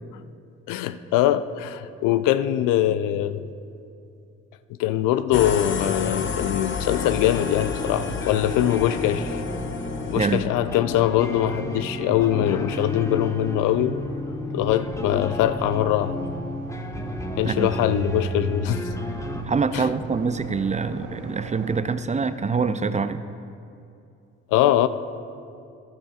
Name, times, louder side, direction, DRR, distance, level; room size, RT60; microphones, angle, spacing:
voice 1, 0.7-3.4 4.8-9.4 10.1-14.0 14.5-16.3 17.4-18.9 19.7-19.9 24.5-24.9, left 12 dB, 70° left, 13 dB, 0.5 m, -22 dB
sound 1, 5.3-10.5, left 5 dB, 35° left, 0.8 m, -30 dB
sound 2, 6.8-19.4, left 1 dB, 10° left, 0.8 m, -33 dB
sound 3, 7.3-21.8, right 5 dB, 65° right, 1.4 m, -39 dB
voice 2, 19.5-23.2, right 5 dB, 20° right, 12 dB, 0.4 m, -25 dB
12.5 x 12.0 x 2.4 m, 2.5 s
hypercardioid pair, 50°, 33 cm